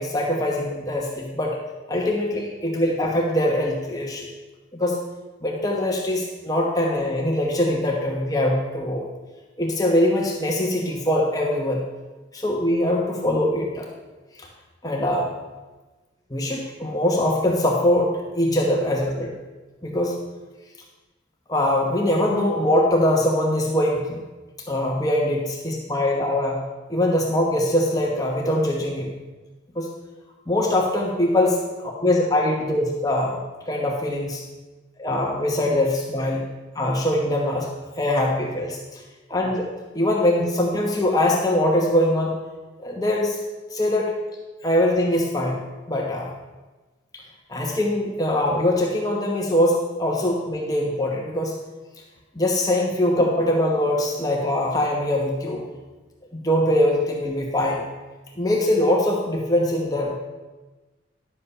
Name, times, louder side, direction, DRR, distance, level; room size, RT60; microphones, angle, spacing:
voice 1, 0.0-1.6 1.9-4.3 4.7-5.0 5.4-9.1 9.6-11.8 12.3-13.9 14.4-14.5 14.8-15.3 16.3-19.3 19.8-20.1 21.5-24.2 24.7-26.6 26.9-29.1 29.7-29.9 30.5-31.6 32.0-33.4 33.7-34.4 35.0-36.4 36.7-37.7 38.0-39.0 39.3-42.3 42.8-43.4 43.7-44.1 44.6-45.6 45.9-46.3 47.1-47.2 47.5-51.6 52.3-55.6 56.4-57.8 58.4-60.1, left 1 dB, 20° left, -1 dB, 1.1 m, -22 dB
11.5 x 7.7 x 5.6 m, 1.2 s
head